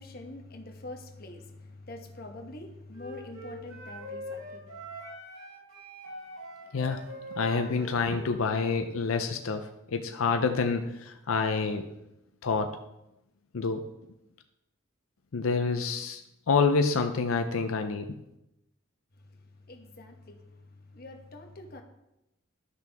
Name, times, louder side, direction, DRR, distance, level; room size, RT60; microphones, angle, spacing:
voice 1, 0.0-4.7 19.7-21.8, left 2 dB, 45° left, 1.1 m, -45 dB
Wind instrument woodwind instrument, 2.9-8.4, equal, 85° right, 3.3 m, -43 dB
voice 2, 7.4-11.9 12.4-12.8 13.5-13.9 15.3-16.2 16.5-18.1, left 4 dB, 90° left, 0.6 m, -27 dB
12.5 x 5.9 x 3.5 m
head